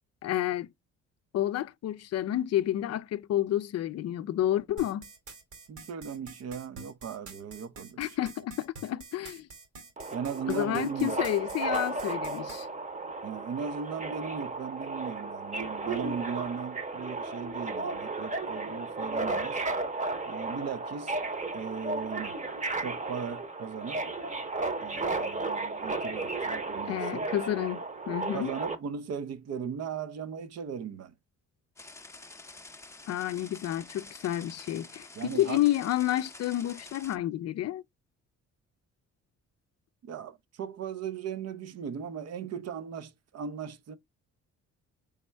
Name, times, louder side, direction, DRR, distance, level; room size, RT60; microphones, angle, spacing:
voice 1, 0.2-0.7 1.3-5.1 8.0-9.5 10.5-12.7 26.9-28.5 33.1-37.8, left 13 dB, 55° left, 0.4 m, -30 dB
sound 1, 4.8-12.6, right 4 dB, 75° right, 2.3 m, -47 dB
voice 2, 5.7-8.2 10.1-11.2 13.2-19.6 20.3-21.2 21.5-22.4 22.8-24.0 24.8-27.3 28.3-31.1 35.1-35.6 40.0-44.0, right 7 dB, 55° right, 0.6 m, -37 dB
Subway metro underground, 10.0-28.8, right 3 dB, 25° right, 0.9 m, -34 dB
sound 2, 31.8-37.2, left 2 dB, 10° left, 0.6 m, -48 dB
4.2 x 3.5 x 3.3 m
cardioid pair, 90°, 30 cm